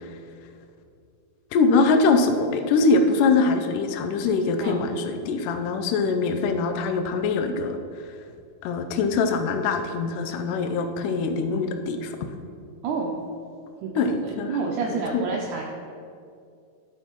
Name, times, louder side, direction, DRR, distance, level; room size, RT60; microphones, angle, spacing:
voice 1, 1.5-7.8 8.6-12.2 14.0-14.5 14.9-15.2, left 4 dB, 80° left, 5 dB, 1.9 m, -23 dB
voice 2, 4.6-4.9 12.8-13.2 13.8-15.6, right 4 dB, 80° right, -1 dB, 1.8 m, -29 dB
12.5 x 6.5 x 3.0 m, 2.4 s
omnidirectional pair, 4.2 m